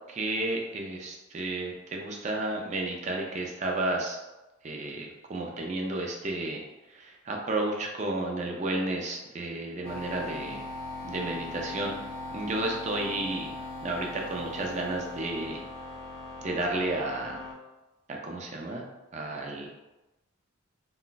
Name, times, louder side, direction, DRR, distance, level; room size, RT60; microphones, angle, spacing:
voice 1, 0.1-4.2 4.6-6.6 6.9-10.6 11.0-12.0 12.3-13.5 13.8-15.6 16.4-17.4 18.1-18.9 19.1-19.7, right 2 dB, 35° right, 0 dB, 0.4 m, -32 dB
sound 1, 9.8-17.5, left 2 dB, 5° left, 0.7 m, -39 dB
2.4 x 2.2 x 3.8 m, 1.0 s
head